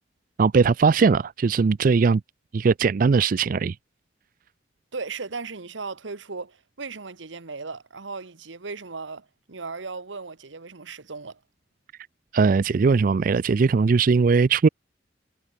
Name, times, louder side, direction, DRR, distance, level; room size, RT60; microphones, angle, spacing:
voice 1, 0.4-2.2 2.5-3.8 12.3-14.7, right 5 dB, 45° right, 0.4 m, -19 dB
voice 2, 4.9-11.4, right 4 dB, 80° right, 1.3 m, -36 dB
head